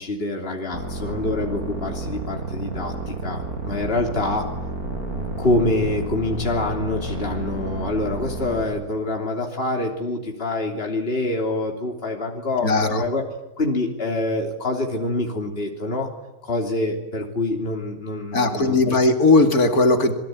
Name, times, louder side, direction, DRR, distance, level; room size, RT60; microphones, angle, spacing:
voice 1, 0.0-4.5 5.4-13.2 13.6-16.1 16.4-19.0, left 2 dB, 40° left, 1 dB, 3.5 m, -26 dB
sound 1, 0.7-8.6, right 1 dB, 75° right, 6.3 m, -31 dB
voice 2, 12.6-13.0 18.3-20.1, left 2 dB, 80° left, 5 dB, 3.1 m, -18 dB
27.5 x 23.0 x 9.4 m, 0.99 s
omnidirectional pair, 1.6 m